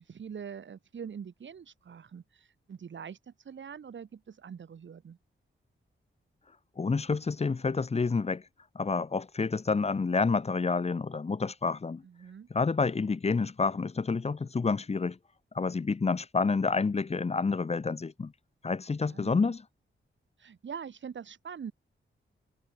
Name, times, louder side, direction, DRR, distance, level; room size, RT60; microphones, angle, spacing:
voice 1, 0.0-5.2 12.0-12.5 19.1-19.5 20.4-21.7, right 7 dB, 65° right, 4.4 m, -44 dB
voice 2, 6.8-8.4 8.7-12.0 12.5-15.2 15.5-18.3 18.6-19.6, left 4 dB, 30° left, 1.5 m, -29 dB
wide cardioid pair, 170°, 21 cm